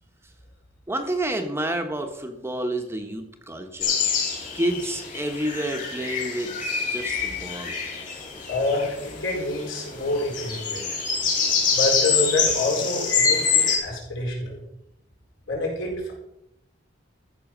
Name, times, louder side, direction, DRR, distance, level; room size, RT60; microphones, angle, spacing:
voice 1, 0.9-4.0 4.5-6.5 6.9-7.8, right 1 dB, 15° right, 5 dB, 1.0 m, -29 dB
sound 1, 3.8-13.8, left 5 dB, 40° left, 3.0 m, -25 dB
voice 2, 8.5-11.0 11.7-14.6 15.5-16.1, left 2 dB, 70° left, -2 dB, 4.5 m, -27 dB
14.0 x 6.2 x 6.1 m, 0.82 s
head